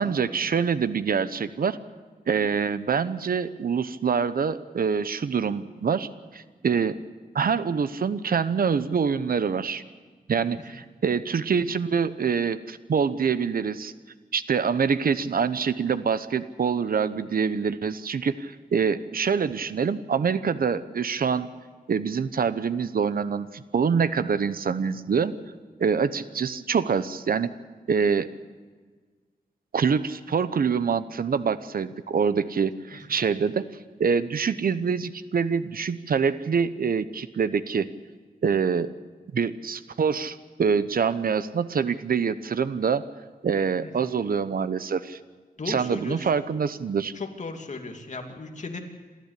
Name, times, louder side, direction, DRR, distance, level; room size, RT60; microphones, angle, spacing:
voice 1, 0.0-1.8 2.3-7.0 7.3-9.8 10.3-13.9 14.3-21.5 21.9-23.5 23.7-25.3 25.8-27.5 27.9-28.3 29.7-33.6 34.0-37.9 38.4-38.9 39.3-43.0 43.4-45.2 45.7-47.1, right 6 dB, 70° right, 13 dB, 0.9 m, -25 dB
voice 2, 45.6-46.3 47.1-48.8, left 3 dB, 50° left, 3 dB, 2.7 m, -36 dB
28.0 x 13.5 x 8.4 m, 1.5 s
wide cardioid pair, 100°, 15 cm